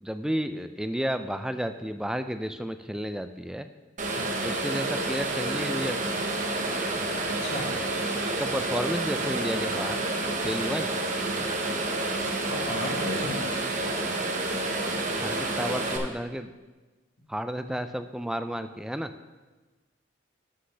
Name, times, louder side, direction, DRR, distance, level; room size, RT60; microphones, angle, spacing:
voice 1, 0.0-3.7 4.4-6.1 8.2-10.0 10.4-10.9 15.2-16.5 17.3-19.1, equal, 5° right, 9 dB, 0.3 m, -32 dB
sound 1, 4.0-16.0, right 2 dB, 40° right, 1.0 m, -29 dB
voice 2, 7.3-7.7 12.5-13.5, left 1 dB, 65° left, 0 dB, 1.7 m, -34 dB
11.5 x 7.6 x 3.3 m, 1.2 s
head